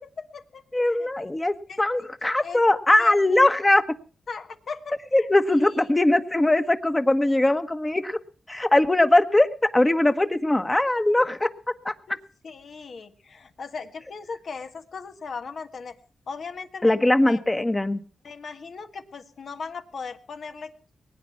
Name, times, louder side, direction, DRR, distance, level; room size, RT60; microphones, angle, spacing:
voice 1, 0.0-0.6 0.9-1.2 1.7-2.1 2.4-2.6 3.0-3.4 4.3-5.3 5.6-5.7 12.1-12.2 12.4-16.0 16.3-17.4 18.2-20.7, left 5 dB, 65° left, 8 dB, 1.5 m, -38 dB
voice 2, 0.7-3.8 5.1-8.2 8.5-9.5 9.7-11.5 11.8-11.9 16.8-18.0, left 1 dB, 20° left, 9 dB, 1.2 m, -21 dB
20.5 x 9.4 x 5.8 m, 0.40 s
cardioid pair, 55°, 0 cm